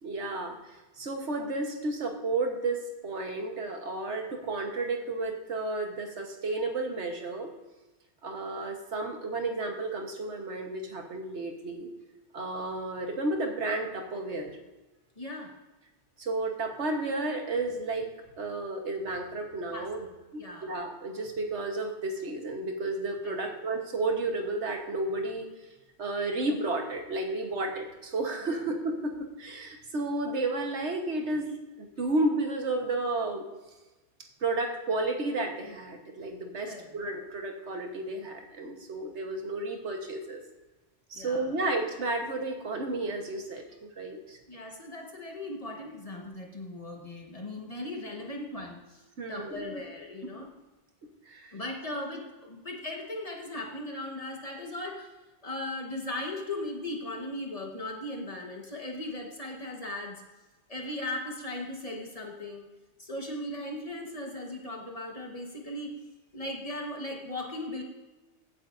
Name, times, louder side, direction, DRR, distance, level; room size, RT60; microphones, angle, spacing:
voice 1, 0.0-7.5 8.2-11.9 12.3-14.5 16.2-18.1 18.4-20.1 20.3-25.5 26.0-33.5 34.4-40.4 41.1-44.4 49.2-49.8 51.3-51.5, right 2 dB, 80° right, 4 dB, 1.5 m, -32 dB
voice 2, 15.2-15.5 19.7-19.9 20.4-20.7 23.2-23.5 36.7-37.0 41.1-41.5 44.5-50.5 51.5-55.1 55.4-60.2 60.7-62.7 63.0-65.9 66.3-67.8, left 1 dB, 30° left, 0 dB, 1.4 m, -38 dB
15.5 x 8.4 x 2.6 m, 1.1 s
omnidirectional pair, 1.2 m